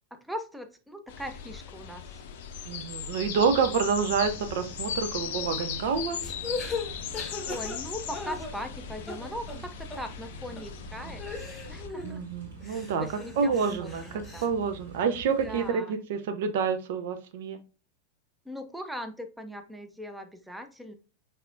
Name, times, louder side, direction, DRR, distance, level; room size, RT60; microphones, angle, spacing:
voice 1, 0.3-2.0 7.5-11.2 11.7-12.3 13.0-14.5 15.4-15.9 18.5-21.0, equal, 5° right, 7 dB, 0.6 m, -39 dB
sound 1, 1.1-11.9, left 8 dB, 55° left, 0.5 m, -38 dB
voice 2, 2.7-6.2 11.0-11.1 12.0-13.1 13.4-17.6, right 6 dB, 55° right, 9 dB, 0.5 m, -28 dB
sound 2, 3.4-15.7, right 3 dB, 75° right, 2.2 m, -47 dB
sound 3, 6.2-8.8 9.1-9.6 9.9-10.0 10.6-10.7 11.2-12.2 12.6-14.5, left 3 dB, 15° left, 1.0 m, -38 dB
5.7 x 3.4 x 2.5 m, 0.34 s
figure-of-eight pair, 90°, 0 cm